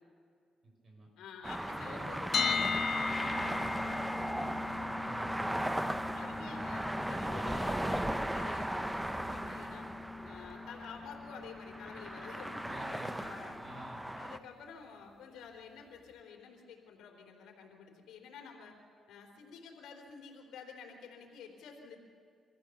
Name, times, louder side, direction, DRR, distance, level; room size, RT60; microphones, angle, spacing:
voice 1, 0.6-1.1 1.7-2.6 3.2-3.5 3.9-6.0 12.7-14.1, right 1 dB, 45° right, 1 dB, 6.4 m, -51 dB
voice 2, 1.2-3.4 6.1-9.9 10.2-13.6 14.2-18.7 19.1-22.0, left 6 dB, 80° left, 2 dB, 3.6 m, -50 dB
sound 1, 1.4-14.4, right 1 dB, 5° right, 0.7 m, -37 dB
sound 2, 2.3-14.2, left 5 dB, 55° left, 0.9 m, -40 dB
sound 3, 3.3-9.9, right 6 dB, 75° right, 1.0 m, -57 dB
25.0 x 15.0 x 7.2 m, 2.4 s
cardioid pair, 90°, 0 cm